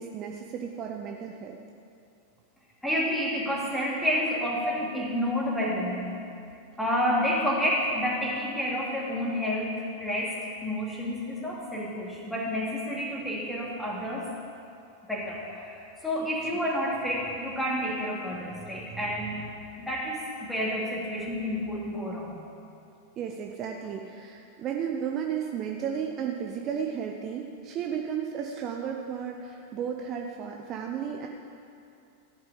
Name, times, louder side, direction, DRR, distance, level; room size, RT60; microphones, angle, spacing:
voice 1, 0.0-1.6 23.2-31.3, right 7 dB, 35° right, 1 dB, 0.8 m, -33 dB
voice 2, 2.8-6.1 6.8-14.3 15.1-19.5 19.8-22.4, equal, 5° left, -4 dB, 2.7 m, -29 dB
14.5 x 6.0 x 8.5 m, 2.6 s
figure-of-eight pair, 90°, 0 cm